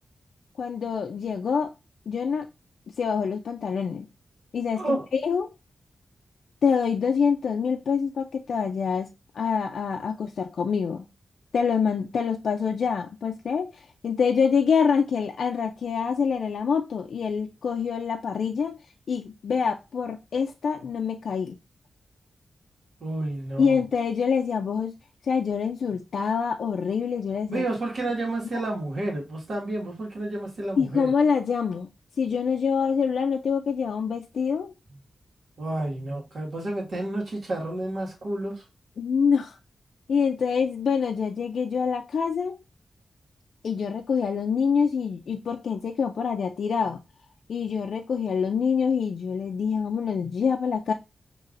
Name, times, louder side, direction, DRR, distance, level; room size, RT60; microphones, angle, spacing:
voice 1, 0.6-1.7 2.1-2.5 3.0-4.1 4.5-5.5 6.6-9.1 9.3-11.1 11.5-13.7 14.0-18.8 19.1-21.6 23.6-24.9 25.2-27.6 30.8-31.9 32.2-34.7 39.0-39.6 40.1-42.6 43.6-47.0 47.5-50.9, left 6 dB, 75° left, 0.4 m, -25 dB
voice 2, 23.0-23.8 27.5-31.1 35.6-38.6, right 2 dB, 60° right, 1.7 m, -30 dB
5.4 x 3.0 x 2.5 m
wide cardioid pair, 130°, 0 cm